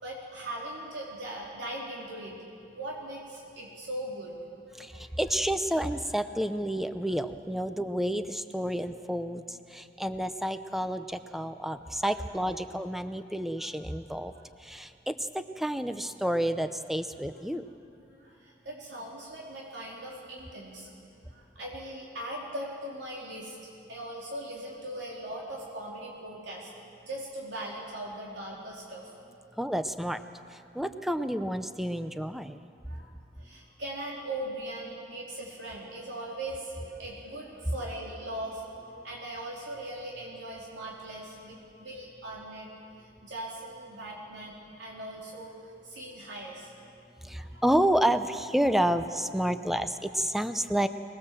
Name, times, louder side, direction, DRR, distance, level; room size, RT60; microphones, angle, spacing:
voice 1, 0.0-2.4 2.7-4.3 4.7-5.0 13.6-13.7 14.3-14.4 18.0-20.9 21.3-23.6 23.9-26.7 27.0-29.1 32.9-33.1 33.4-42.7 43.0-46.7 47.4-47.6, right 1 dB, 70° right, -4 dB, 3.6 m, -40 dB
voice 2, 4.8-14.3 14.6-17.6 29.6-30.2 30.7-32.6 47.2-50.9, equal, ahead, 10 dB, 0.7 m, -30 dB
26.0 x 20.0 x 7.6 m, 2.6 s
head